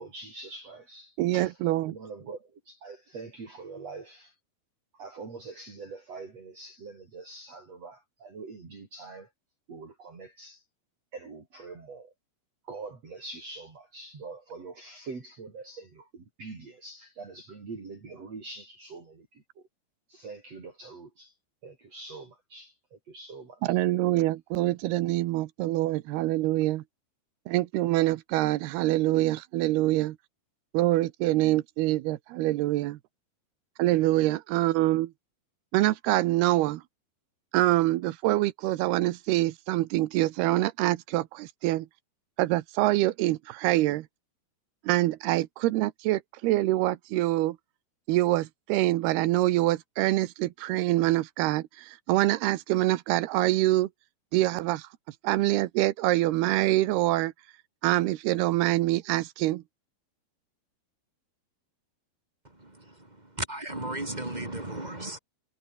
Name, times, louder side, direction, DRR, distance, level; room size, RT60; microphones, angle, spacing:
voice 1, 0.0-1.6 1.9-4.3 4.9-9.3 9.7-10.6 11.1-12.1 12.6-19.4 20.1-21.3 21.6-23.8, right 3 dB, 40° right, 5.8 m, -44 dB
voice 2, 1.2-2.0 23.6-26.8 27.5-30.2 30.7-33.0 33.8-35.1 35.7-36.8 37.5-41.9 42.4-44.1 44.8-47.6 48.1-53.9 54.3-54.9 55.2-57.3 57.8-59.6, right 17 dB, 90° right, 2.9 m, -25 dB
voice 3, 62.4-65.2, right 2 dB, 15° right, 2.3 m, -36 dB
omnidirectional pair, 4.6 m